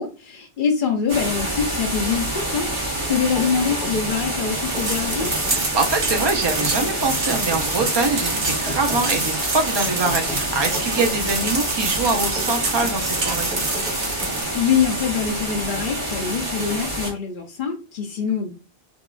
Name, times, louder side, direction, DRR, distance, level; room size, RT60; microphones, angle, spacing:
voice 1, 0.0-5.3 14.5-18.5, left 7 dB, 60° left, 3 dB, 0.8 m, -24 dB
sound 1, 1.1-17.1, right 1 dB, 65° right, 1.5 m, -27 dB
sound 2, 3.4-14.4, equal, ahead, 0.8 m, -37 dB
sound 3, 4.7-14.5, right 3 dB, 50° right, 1.0 m, -27 dB
voice 2, 5.5-13.5, right 3 dB, 30° right, 4 dB, 0.5 m, -24 dB
3.7 x 2.3 x 2.4 m, 0.31 s
omnidirectional pair, 1.0 m